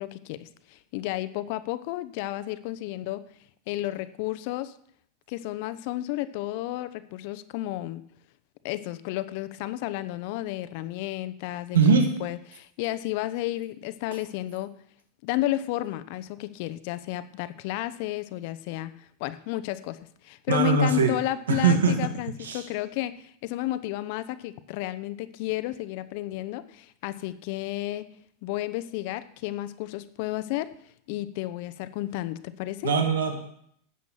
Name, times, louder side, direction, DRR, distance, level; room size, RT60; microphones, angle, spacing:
voice 1, 0.0-3.2 3.7-4.7 5.3-8.0 8.6-11.8 12.2-14.7 15.2-18.9 19.2-20.0 20.2-28.1 28.4-30.7 31.1-32.9, left 15 dB, 60° left, 14 dB, 0.8 m, -32 dB
voice 2, 11.7-12.0 20.5-21.1 21.5-21.9 22.4-22.6 32.8-33.4, right 5 dB, 85° right, 5 dB, 1.8 m, -21 dB
11.0 x 7.2 x 7.3 m, 0.68 s
hypercardioid pair, 100°, 0 cm